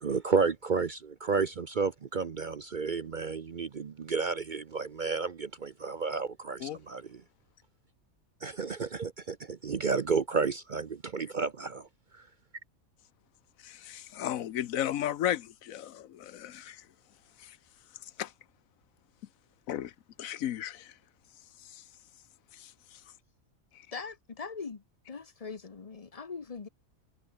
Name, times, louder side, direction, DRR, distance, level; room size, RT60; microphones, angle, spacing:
voice 1, 0.0-7.2 8.4-11.9, right 5 dB, 45° right, 0.7 m, -31 dB
voice 2, 13.6-16.9 17.4-17.6 18.2-18.3 19.7-19.9 20.2-20.9 21.6-21.8 22.5-23.0 23.7-23.9, left 11 dB, 75° left, 1.1 m, -35 dB
voice 3, 23.9-26.7, left 5 dB, 30° left, 0.9 m, -41 dB
omnidirectional pair, 1.4 m